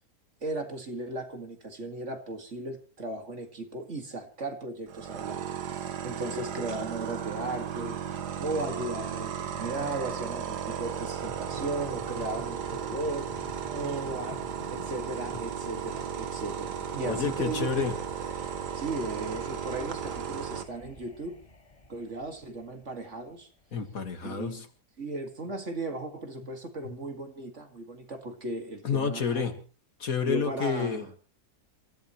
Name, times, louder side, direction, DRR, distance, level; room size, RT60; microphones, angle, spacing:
voice 1, 0.4-8.0 8.4-14.4 14.7-17.7 18.7-21.4 21.9-23.5 24.2-24.6 25.0-29.4 30.3-31.1, right 2 dB, 45° right, 2.3 m, -36 dB
sound 1, 4.9-20.6, right 8 dB, 85° right, 1.8 m, -35 dB
sound 2, 11.2-23.9, left 3 dB, 25° left, 1.3 m, -48 dB
voice 2, 17.1-18.0 23.7-24.7 28.8-29.6 30.0-31.1, left 6 dB, 60° left, 2.1 m, -29 dB
28.0 x 14.5 x 3.1 m
omnidirectional pair, 1.7 m